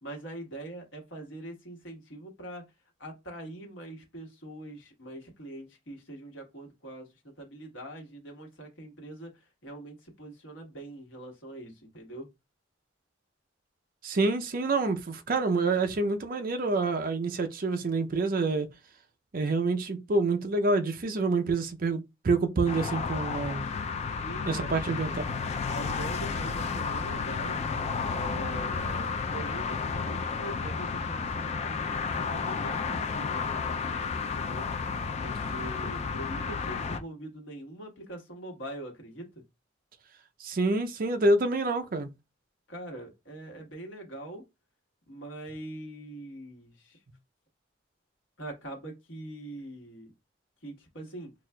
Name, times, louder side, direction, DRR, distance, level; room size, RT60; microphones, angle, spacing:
voice 1, 0.0-2.6 3.0-12.3 24.2-24.7 25.7-27.6 28.1-33.6 34.2-34.7 35.2-39.4 42.7-44.4 45.1-47.0 48.4-50.1 50.6-51.3, right 1 dB, 85° left, 1.4 m, -43 dB
voice 2, 14.0-18.7 19.3-23.6 24.5-25.1 40.4-42.1, right 3 dB, 50° right, 0.5 m, -27 dB
sound 1, 22.7-37.0, left 5 dB, 35° left, 0.3 m, -32 dB
5.9 x 2.4 x 2.2 m
head